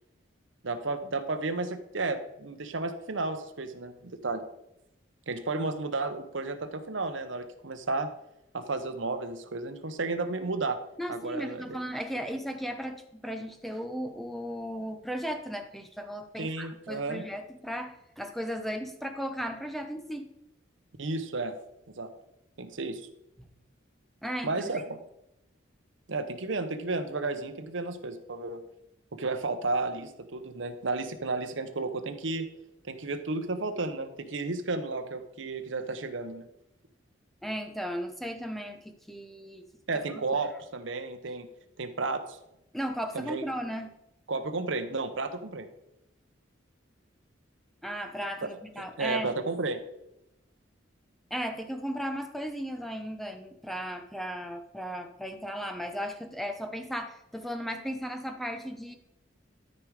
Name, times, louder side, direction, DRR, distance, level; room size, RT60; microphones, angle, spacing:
voice 1, 0.6-4.4 5.3-8.1 8.5-10.8 11.1-11.8 16.4-17.2 21.0-21.5 21.9-22.1 22.6-23.0 24.4-25.0 26.1-28.6 29.1-32.5 32.8-36.5 39.9-41.5 41.8-42.4 43.1-43.5 44.3-45.7 48.4-48.5 48.8-49.8, right 3 dB, 70° right, 8 dB, 0.9 m, -32 dB
voice 2, 11.0-20.3 23.4-23.5 24.2-24.5 37.4-39.7 40.1-40.2 42.7-43.9 47.8-49.3 51.3-59.0, equal, ahead, 6 dB, 0.7 m, -36 dB
12.5 x 5.1 x 4.8 m, 0.87 s
head